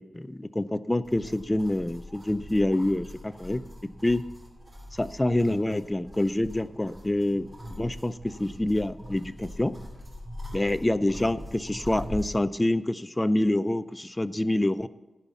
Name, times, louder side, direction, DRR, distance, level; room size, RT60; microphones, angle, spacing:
voice 1, 0.0-3.6 4.0-4.2 4.9-9.8 10.5-14.9, left 1 dB, 10° left, 15 dB, 0.4 m, -27 dB
sound 1, 1.0-12.4, equal, 20° right, 2.7 m, -42 dB
15.0 x 5.6 x 7.1 m, 1.1 s
wide cardioid pair, 170°, 0 cm